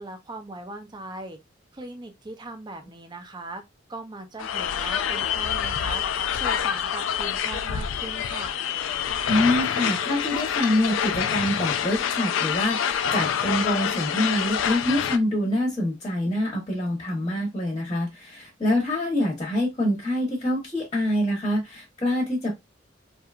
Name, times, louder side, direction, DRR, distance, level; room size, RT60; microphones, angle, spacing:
voice 1, 0.0-1.4 1.7-3.6 3.9-6.0 6.3-8.5, right 2 dB, 20° right, 0.5 m, -39 dB
sound 1, 4.4-15.2, left 8 dB, 70° left, 0.3 m, -26 dB
voice 2, 9.3-22.6, left 1 dB, 25° left, 0.9 m, -25 dB
2.8 x 2.2 x 2.4 m
head